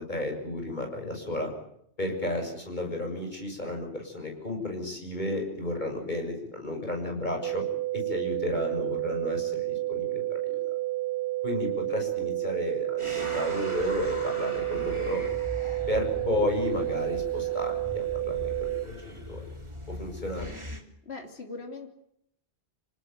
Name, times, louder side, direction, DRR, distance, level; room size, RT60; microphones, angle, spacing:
voice 1, 0.0-1.5 2.0-7.6 7.9-10.5 11.4-15.3 15.9-19.5 19.9-20.6, left 2 dB, 40° left, 3 dB, 7.2 m, -33 dB
sound 1, 7.4-18.9, right 17 dB, 55° right, 2.3 m, -30 dB
sound 2, 13.0-20.8, equal, 25° right, 3.1 m, -40 dB
voice 2, 21.1-22.0, left 3 dB, 65° left, 4 dB, 3.3 m, -40 dB
27.0 x 19.0 x 9.4 m, 0.73 s
omnidirectional pair, 1.1 m